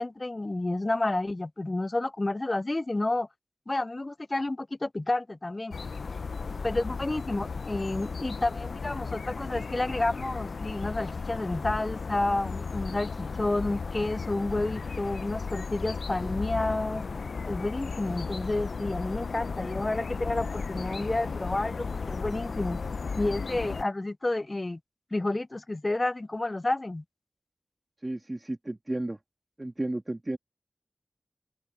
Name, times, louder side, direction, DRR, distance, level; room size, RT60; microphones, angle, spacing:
voice 1, 0.0-3.3 3.7-5.7 6.6-17.0 17.5-22.8 23.2-24.8 25.1-27.0, left 2 dB, 35° left, 0.4 m, -30 dB
sound 1, 5.7-23.8, left 4 dB, 85° left, 0.5 m, -35 dB
voice 2, 28.0-29.2 29.6-30.4, right 1 dB, 30° right, 2.1 m, -33 dB
open air
wide cardioid pair, 50°, 0 cm